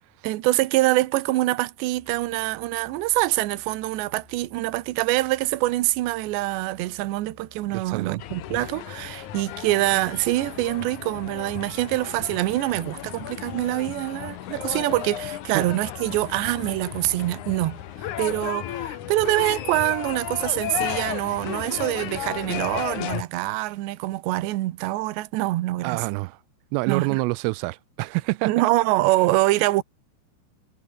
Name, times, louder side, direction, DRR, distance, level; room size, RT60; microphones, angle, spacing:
voice 1, 0.2-26.1 26.9-27.2 28.4-29.8, right 18 dB, 70° right, 3.1 m, -25 dB
Musical instrument, 1.9-8.8, left 5 dB, 50° left, 7.3 m, -56 dB
voice 2, 7.7-8.2 15.5-15.6 25.8-26.4 26.7-28.5, right 24 dB, 90° right, 3.2 m, -27 dB
sound 1, 8.2-23.2, left 12 dB, 90° left, 1.7 m, -34 dB
omnidirectional pair, 5.6 m